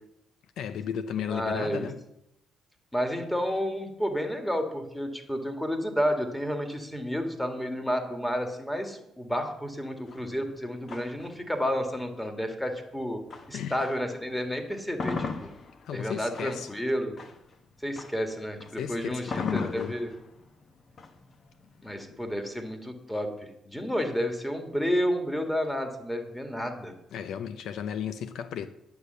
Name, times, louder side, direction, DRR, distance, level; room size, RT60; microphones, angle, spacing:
voice 1, 0.6-2.0 13.5-13.8 15.8-16.7 18.8-19.9 22.1-22.2 27.1-28.7, left 8 dB, 75° left, 0.6 m, -34 dB
voice 2, 1.3-1.9 2.9-13.2 13.5-15.5 15.9-17.2 17.8-20.1 21.8-26.9, equal, 5° left, 1.9 m, -31 dB
sound 1, 10.1-14.2 14.6-22.5, left 4 dB, 50° left, 1.2 m, -39 dB
9.8 x 6.8 x 6.8 m
cardioid pair, 90°, 0 cm